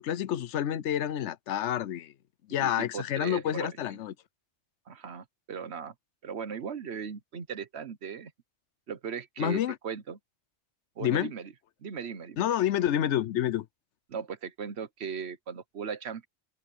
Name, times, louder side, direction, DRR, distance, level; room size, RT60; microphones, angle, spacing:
voice 1, 0.0-2.1 2.5-4.1 9.4-9.8 11.0-11.3 12.4-13.7, left 11 dB, 90° left, 1.0 m, -28 dB
voice 2, 2.6-3.7 4.9-5.9 6.2-8.3 8.9-10.2 11.0-11.5 11.8-12.4 14.1-16.3, right 6 dB, 70° right, 1.2 m, -38 dB
open air
omnidirectional pair, 1.2 m